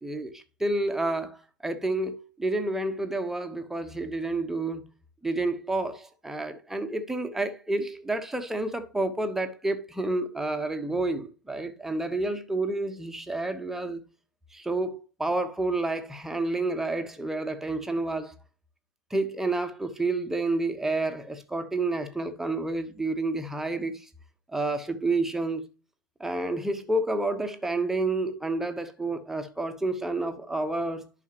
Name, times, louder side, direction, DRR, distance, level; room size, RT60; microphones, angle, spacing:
voice 1, 0.0-4.8 5.2-14.0 14.5-18.3 19.1-24.1 24.5-25.7 26.2-31.0, right 2 dB, 5° right, 1.0 m, -29 dB
11.0 x 5.7 x 2.9 m
figure-of-eight pair, 110°, 12 cm